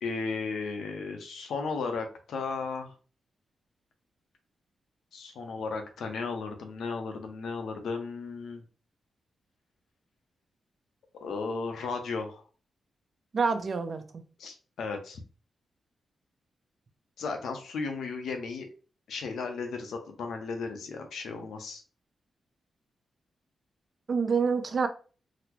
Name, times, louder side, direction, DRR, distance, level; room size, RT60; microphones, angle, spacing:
voice 1, 0.0-2.9 5.1-8.6 11.2-12.4 14.4-15.2 17.2-18.7 19.1-21.8, left 4 dB, 85° left, 5 dB, 0.7 m, -35 dB
voice 2, 13.3-14.0 24.1-24.9, right 5 dB, 50° right, 7 dB, 0.5 m, -26 dB
4.0 x 2.0 x 2.9 m, 0.38 s
cardioid pair, 90°, 0 cm